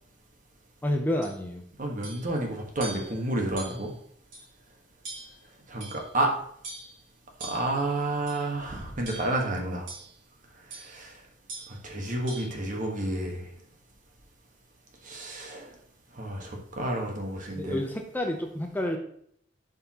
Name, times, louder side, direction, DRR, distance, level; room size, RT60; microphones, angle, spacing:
voice 1, 0.8-1.6 17.6-19.0, left 1 dB, 10° left, 3 dB, 0.6 m, -29 dB
sound 1, 1.2-1.4 2.0-2.3 2.8-3.2 3.6-3.9 4.3-4.4 5.0-5.4 5.8-6.2 6.6-7.0 7.4-7.8 8.3-8.5 9.0-9.5 9.9-10.1 10.7-10.9 11.5-11.8 12.3-12.5, right 2 dB, 80° right, 3.1 m, -42 dB
voice 2, 1.8-3.9 5.7-6.3 7.4-9.9 10.8-11.2 11.8-13.5 15.0-15.7 16.1-17.8, right 1 dB, 45° right, 1 dB, 1.5 m, -30 dB
11.0 x 5.4 x 3.0 m, 0.66 s
head